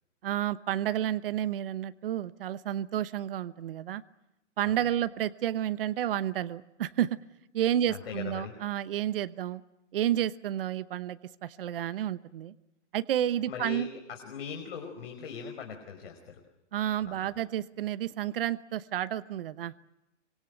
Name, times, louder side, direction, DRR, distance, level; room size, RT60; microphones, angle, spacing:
voice 1, 0.2-4.0 4.6-7.2 7.5-9.6 9.9-12.5 12.9-13.9 16.7-19.9, right 11 dB, 50° right, 13 dB, 1.0 m, -31 dB
voice 2, 7.9-8.5 13.5-16.4 17.0-17.4, left 6 dB, 55° left, 3 dB, 5.2 m, -40 dB
25.5 x 25.0 x 8.0 m, 0.89 s
hypercardioid pair, 165°, 36 cm